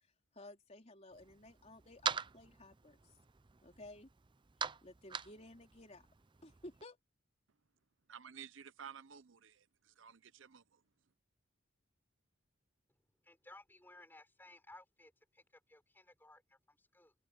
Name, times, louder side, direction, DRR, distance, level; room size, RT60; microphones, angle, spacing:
voice 1, 0.3-3.0 3.6-4.1 4.8-6.1 6.4-7.0, left 1 dB, 30° left, 4.0 m, -55 dB
sound 1, 1.1-6.8, right 6 dB, 25° right, 0.5 m, -44 dB
voice 2, 8.1-10.8, right 7 dB, 70° right, 0.7 m, -53 dB
voice 3, 13.2-17.1, left 2 dB, 10° left, 4.4 m, -59 dB
head